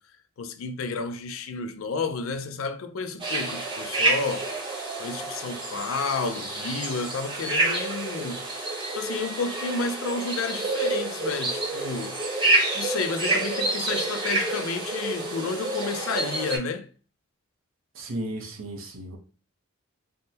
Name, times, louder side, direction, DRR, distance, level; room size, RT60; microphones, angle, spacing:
voice 1, 0.4-4.5 5.0-8.5 9.0-12.2 12.7-16.9, left 4 dB, 80° left, 0.4 m, -31 dB
sound 1, 3.2-16.6, right 2 dB, 25° right, 0.7 m, -28 dB
voice 2, 17.9-19.2, right 1 dB, 80° right, 0.8 m, -34 dB
3.5 x 2.1 x 2.7 m
head